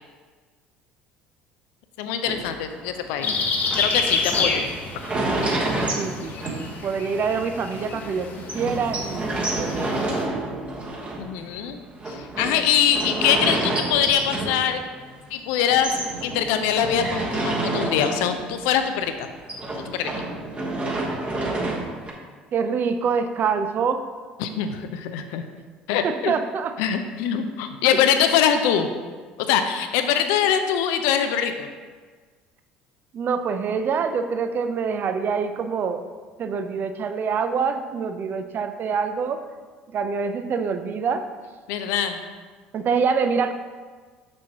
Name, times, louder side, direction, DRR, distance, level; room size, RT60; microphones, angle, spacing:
voice 1, 2.0-3.3 3.8-4.6 11.2-11.8 12.1-14.8 15.3-15.9 16.2-19.3 19.8-20.3 24.4-25.4 25.9-26.3 26.8-28.9 29.4-31.7 41.7-42.2, left 8 dB, 70° left, 8 dB, 0.5 m, -23 dB
sound 1, 2.2-7.2 7.6-7.7 7.9-8.0 8.5-15.3 15.6-18.7 18.9-22.1, right 2 dB, 30° right, 1.2 m, -29 dB
sound 2, 3.2-10.2, left 4 dB, 45° left, 1.0 m, -29 dB
voice 2, 6.0-8.3 8.5-10.1 22.5-24.0 26.0-26.8 33.1-36.0 36.4-39.4 39.9-41.2 42.7-43.5, right 5 dB, 45° right, 8 dB, 0.5 m, -25 dB
6.1 x 6.0 x 2.9 m, 1.5 s
hypercardioid pair, 65°, 5 cm